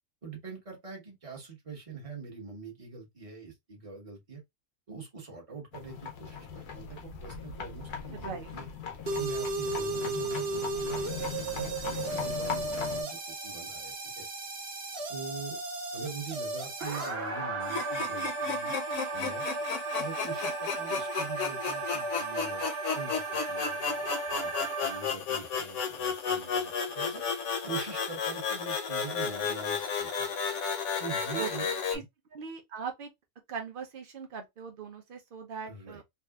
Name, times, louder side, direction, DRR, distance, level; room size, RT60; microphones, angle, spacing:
voice 1, 0.2-4.4 4.9-8.7 9.1-14.3 15.1-15.6 15.9-18.8 19.1-19.4 20.0-22.6 22.9-27.2 27.6-30.3 31.0-31.6 31.9-32.0 35.6-36.0, right 5 dB, 25° right, 1.0 m, -43 dB
sound 1, 5.7-13.0, left 7 dB, 90° left, 1.3 m, -39 dB
sound 2, 9.1-25.1, right 3 dB, 50° right, 0.9 m, -35 dB
sound 3, 17.6-32.0, left 6 dB, 60° left, 1.0 m, -33 dB
voice 2, 31.4-32.0 32.3-33.1 33.5-36.0, right 6 dB, 80° right, 0.4 m, -40 dB
3.7 x 2.3 x 2.3 m
omnidirectional pair, 1.6 m